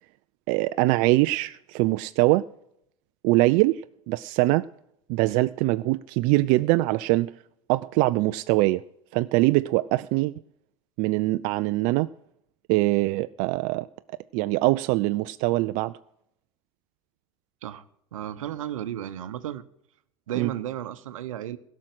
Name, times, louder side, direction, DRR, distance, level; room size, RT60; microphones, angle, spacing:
voice 1, 0.5-2.5 3.2-3.8 4.1-4.7 5.1-7.3 7.7-8.8 9.1-10.3 11.0-12.1 12.7-13.9 14.3-15.9 20.4-20.5, right 19 dB, 55° right, 0.4 m, -23 dB
voice 2, 18.1-19.6 20.3-21.6, right 11 dB, 80° right, 0.9 m, -33 dB
16.5 x 6.3 x 7.9 m
hypercardioid pair, 85°, 17 cm